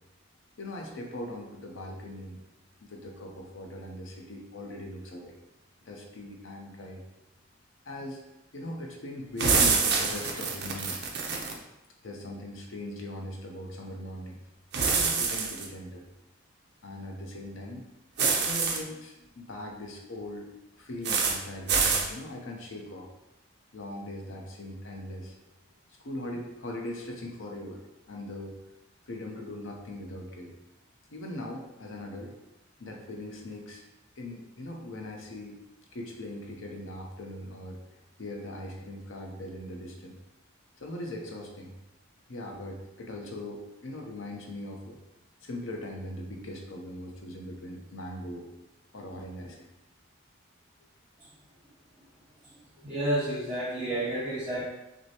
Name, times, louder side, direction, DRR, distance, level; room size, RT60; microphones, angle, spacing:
voice 1, 0.6-2.4 2.8-5.4 5.8-7.0 7.8-8.2 8.5-11.0 12.0-14.4 14.8-16.0 16.8-17.8 18.4-20.5 20.8-23.1 23.7-25.3 26.0-28.6 29.1-30.5 31.1-32.3 32.8-33.8 34.2-35.6 35.9-40.1 40.8-41.7 42.3-45.0 45.4-48.5 48.9-49.7 52.8-52.9, left 1 dB, 70° left, 1 dB, 0.7 m, -40 dB
sound 1, 9.4-11.6 14.7-15.7 18.2-18.8 21.0-21.4 21.7-22.1, right 5 dB, 50° right, 0.5 m, -26 dB
voice 2, 52.8-54.6, right 1 dB, 10° right, -14 dB, 1.2 m, -30 dB
6.1 x 2.1 x 2.8 m, 0.94 s
head